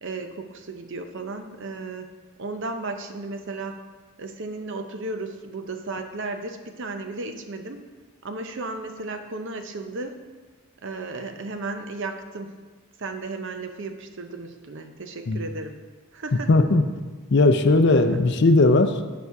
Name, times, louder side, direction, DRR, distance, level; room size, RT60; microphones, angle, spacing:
voice 1, 0.0-2.1 2.4-3.8 4.2-7.9 8.2-10.2 10.8-12.5 13.0-15.8 16.1-16.5, right 3 dB, 55° right, 7 dB, 0.7 m, -34 dB
voice 2, 16.5-16.8 17.3-19.0, left 2 dB, 50° left, 9 dB, 0.5 m, -18 dB
8.3 x 6.1 x 4.7 m, 1.4 s
head